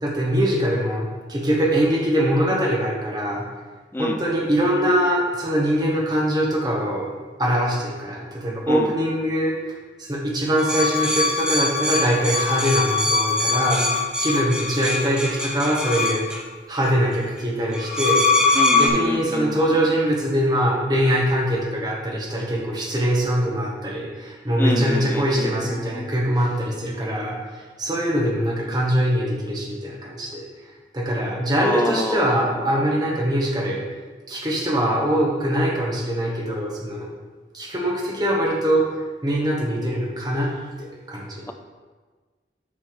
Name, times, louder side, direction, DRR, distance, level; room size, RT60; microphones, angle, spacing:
voice 1, 0.0-3.5 4.0-16.3 16.7-18.3 18.8-30.5 30.9-33.9 34.3-37.1 37.5-41.4, equal, 25° right, -1 dB, 1.1 m, -23 dB
sound 1, 10.6-16.4 17.7-18.9, left 3 dB, 5° right, 0.7 m, -22 dB
voice 2, 18.6-19.6 24.6-25.5 26.0-26.1 31.6-32.3 32.6-32.8, left 1 dB, 10° left, 5 dB, 0.4 m, -26 dB
7.5 x 3.4 x 6.1 m, 1.4 s
head